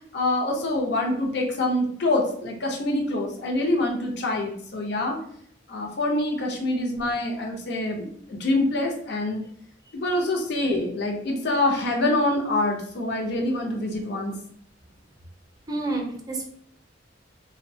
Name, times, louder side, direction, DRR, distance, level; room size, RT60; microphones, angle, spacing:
voice 1, 0.1-5.2 5.7-9.4 10.0-14.3, left 1 dB, 65° left, 1 dB, 0.5 m, -25 dB
voice 2, 15.7-16.5, right 2 dB, 20° right, 0 dB, 0.5 m, -30 dB
2.6 x 2.1 x 2.6 m, 0.65 s
head